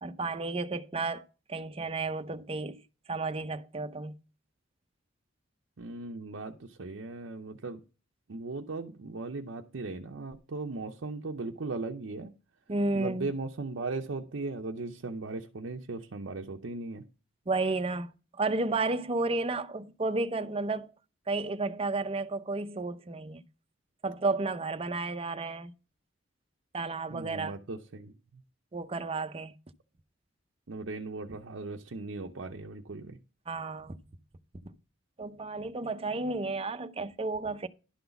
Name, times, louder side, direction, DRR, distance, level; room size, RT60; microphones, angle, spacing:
voice 1, 0.0-2.8 3.1-4.1 12.7-13.3 17.5-18.1 18.4-20.9 21.3-23.4 24.0-25.7 26.7-27.5 28.7-29.5 33.5-34.0 35.2-37.7, right 3 dB, 30° right, 0.6 m, -32 dB
voice 2, 5.8-7.8 8.3-12.3 12.9-17.0 27.1-28.4 30.7-33.2, right 3 dB, 70° right, 0.7 m, -38 dB
11.5 x 3.9 x 6.9 m
head